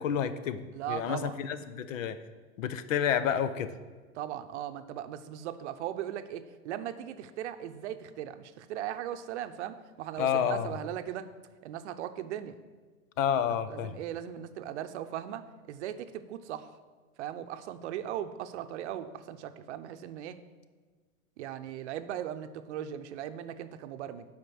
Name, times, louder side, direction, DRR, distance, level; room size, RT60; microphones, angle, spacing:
voice 1, 0.0-0.6 0.9-2.2 2.6-3.7 10.2-10.7 13.2-13.9, left 8 dB, 70° left, 13 dB, 0.8 m, -29 dB
voice 2, 0.7-1.4 4.1-11.3 11.6-12.6 13.7-16.7 17.2-20.4 21.4-24.3, right 11 dB, 55° right, 10 dB, 0.7 m, -38 dB
8.0 x 5.2 x 7.0 m, 1.4 s
hypercardioid pair, 140°, 41 cm